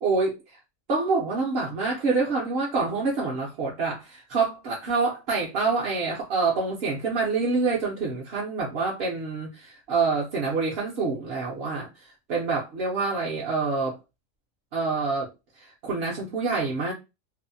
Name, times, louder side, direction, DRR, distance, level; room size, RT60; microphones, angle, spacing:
voice 1, 0.0-0.6 0.9-14.0 14.7-15.3 15.6-16.9, right 4 dB, 60° right, 0.8 m, -27 dB
2.7 x 2.0 x 2.6 m
omnidirectional pair, 1.4 m